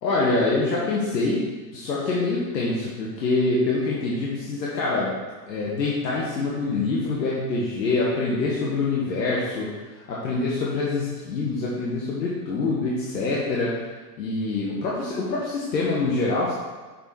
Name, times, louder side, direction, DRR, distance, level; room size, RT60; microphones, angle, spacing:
voice 1, 0.0-1.4 1.7-5.1 5.5-9.7 9.9-13.8 14.2-16.5, left 3 dB, 85° left, -5 dB, 1.5 m, -25 dB
6.7 x 4.4 x 4.8 m, 1.3 s
hypercardioid pair, 120°, 50 cm